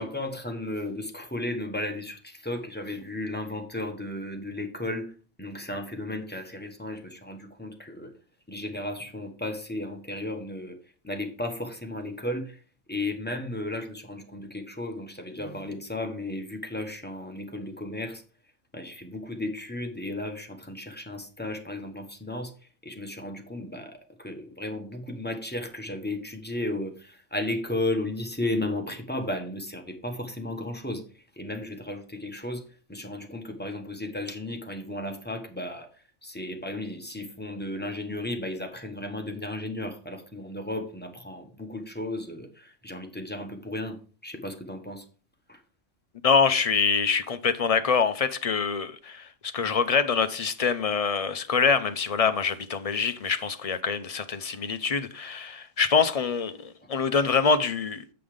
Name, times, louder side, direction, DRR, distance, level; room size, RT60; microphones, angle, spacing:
voice 1, 0.0-5.1 5.4-8.1 8.5-10.8 11.0-12.6 12.9-18.2 18.7-22.5 22.8-32.6 32.9-45.0 45.5-45.6, left 1 dB, 10° left, 1.1 m, -34 dB
voice 2, 46.2-58.0, left 5 dB, 45° left, 0.5 m, -25 dB
7.9 x 5.5 x 5.0 m
omnidirectional pair, 1.3 m